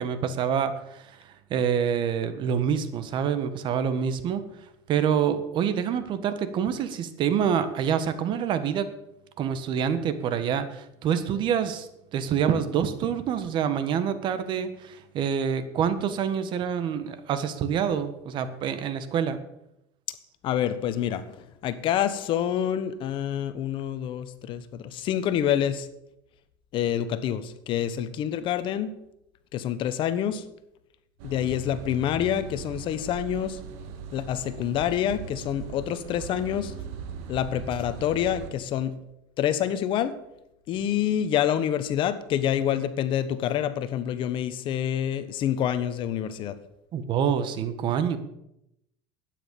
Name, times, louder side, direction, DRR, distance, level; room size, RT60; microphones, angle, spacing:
voice 1, 0.0-4.4 4.9-8.9 9.4-19.4 46.9-48.2, right 8 dB, 45° right, 11 dB, 1.5 m, -27 dB
voice 2, 20.4-21.2 21.6-25.9 26.7-28.9 29.5-30.4 31.2-33.6 34.1-36.7 37.3-38.9 39.4-40.1 40.7-46.6, left 10 dB, 50° left, 12 dB, 1.2 m, -27 dB
sound 1, 31.2-38.5, right 6 dB, 70° right, 1.6 m, -39 dB
12.0 x 9.5 x 7.0 m, 0.82 s
supercardioid pair, 130°, 11 cm